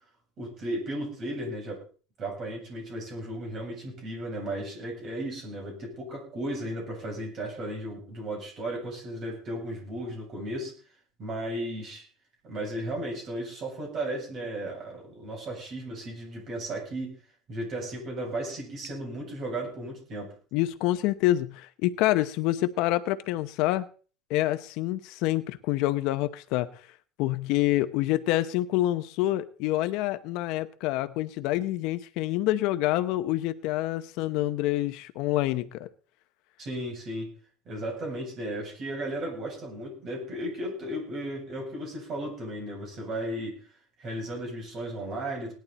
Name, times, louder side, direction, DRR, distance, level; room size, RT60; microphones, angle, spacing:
voice 1, 0.4-1.8 2.2-10.7 11.2-12.0 12.4-17.1 17.5-20.3 36.6-37.3 37.7-43.6 44.0-45.5, right 1 dB, 30° right, 0 dB, 7.6 m, -35 dB
voice 2, 20.5-23.9 24.3-26.7 27.2-35.9, left 15 dB, 55° left, 11 dB, 0.8 m, -27 dB
19.0 x 11.5 x 4.2 m, 0.39 s
cardioid pair, 175°, 0 cm